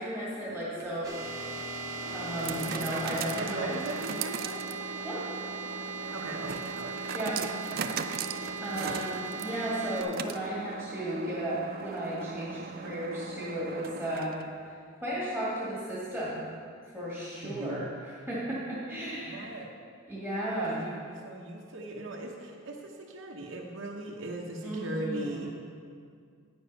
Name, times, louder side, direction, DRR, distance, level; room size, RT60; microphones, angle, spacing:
voice 1, 0.0-1.6 2.1-3.6 5.0-5.3 7.1-7.4 8.6-14.4 14.7-16.4 16.9-19.5 20.1-20.8 24.6-25.4, right 1 dB, 5° left, -9 dB, 2.0 m, -34 dB
sound 1, 0.6-14.6, right 6 dB, 45° right, 0.3 m, -39 dB
sound 2, 1.0-10.0, right 3 dB, 15° right, 1.1 m, -39 dB
voice 2, 3.3-4.6 6.1-7.0 7.7-8.0 8.8-9.0 17.4-17.9 19.2-19.7 20.6-25.5, right 2 dB, 65° right, -1 dB, 0.9 m, -39 dB
9.7 x 7.1 x 5.6 m, 2.2 s
head